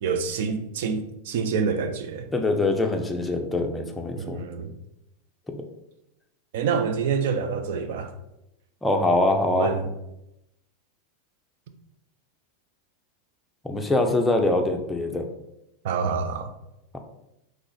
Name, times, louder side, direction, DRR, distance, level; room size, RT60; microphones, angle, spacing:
voice 1, 0.0-2.3 4.2-4.7 6.5-8.1 9.5-9.9 15.8-16.5, right 5 dB, 70° right, 0.4 m, -27 dB
voice 2, 2.3-4.4 5.5-5.6 8.8-9.7 13.6-15.3, left 2 dB, 10° left, 0.5 m, -23 dB
3.1 x 2.4 x 3.9 m
supercardioid pair, 125°, 0 cm